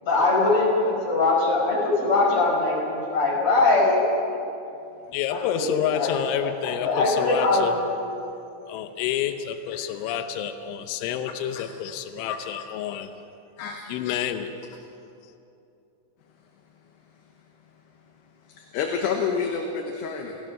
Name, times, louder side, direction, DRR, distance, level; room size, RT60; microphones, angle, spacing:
voice 1, 0.0-4.0 5.3-6.1 6.4-7.9, left 3 dB, 30° left, -3 dB, 5.8 m, -22 dB
voice 2, 5.1-7.8 8.7-13.1 13.9-14.5, left 9 dB, 90° left, 8 dB, 3.3 m, -28 dB
voice 3, 11.3-11.7 12.3-12.4 13.6-13.9 18.5-20.4, left 6 dB, 70° left, 2 dB, 3.2 m, -29 dB
29.0 x 16.5 x 6.2 m, 2.7 s
omnidirectional pair, 5.3 m